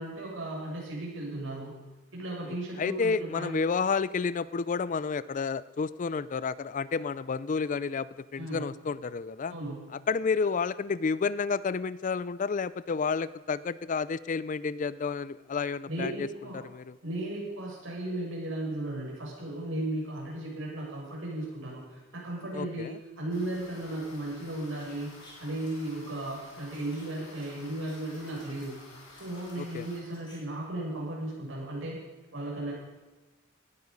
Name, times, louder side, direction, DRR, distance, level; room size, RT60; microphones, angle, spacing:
voice 1, 0.0-1.7 2.1-3.6 8.4-8.6 9.5-9.8 15.9-16.6 17.0-28.8 29.1-32.0 32.3-32.7, right 1 dB, 70° right, -4 dB, 6.8 m, -35 dB
voice 2, 2.5-9.5 10.1-16.3 16.5-16.9 22.5-23.0 29.6-29.9, left 5 dB, 40° left, 18 dB, 0.4 m, -30 dB
sound 1, 23.3-30.0, left 2 dB, 65° left, 5.2 m, -52 dB
sound 2, 24.7-25.9 26.7-27.5 27.8-28.7 29.1-30.4 30.6-30.7, left 1 dB, 25° left, 5.6 m, -58 dB
18.0 x 13.0 x 5.3 m, 1.1 s
head